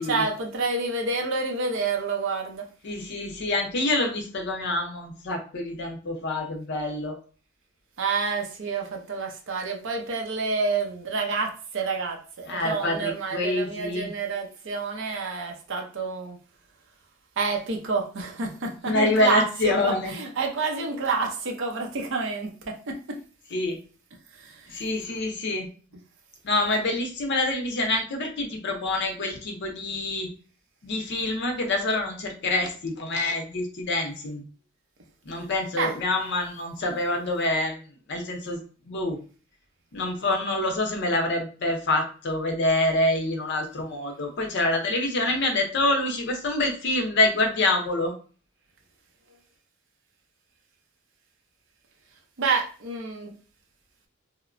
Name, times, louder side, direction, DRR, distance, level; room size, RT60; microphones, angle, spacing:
voice 1, 0.0-2.7 8.0-16.4 17.4-23.2 24.3-24.8 35.8-35.9 52.4-53.3, right 4 dB, 60° right, 0.6 m, -28 dB
voice 2, 2.8-7.2 12.5-14.1 18.8-20.1 23.5-23.8 24.7-25.7 26.4-30.3 30.8-34.4 35.3-38.6 38.9-39.2 39.9-48.1, left 2 dB, 55° left, 0.6 m, -26 dB
2.9 x 2.0 x 2.5 m
head